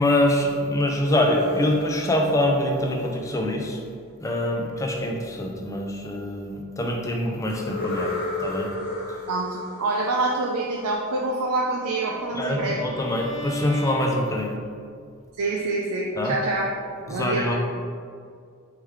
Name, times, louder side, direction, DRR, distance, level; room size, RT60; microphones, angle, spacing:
voice 1, 0.0-3.8 4.2-8.1 8.4-8.7 12.3-14.5 16.2-16.3 17.1-17.5, left 1 dB, 15° left, 1 dB, 0.4 m, -24 dB
sound 1, 0.9-3.8 7.5-11.2, left 2 dB, 45° left, 1.1 m, -34 dB
voice 2, 9.3-12.8 15.4-16.7 17.1-17.5, right 2 dB, 90° right, -1 dB, 0.4 m, -26 dB
Bowed string instrument, 11.7-14.8, equal, 65° right, 1.1 m, -37 dB
4.5 x 3.1 x 3.7 m, 2.2 s
head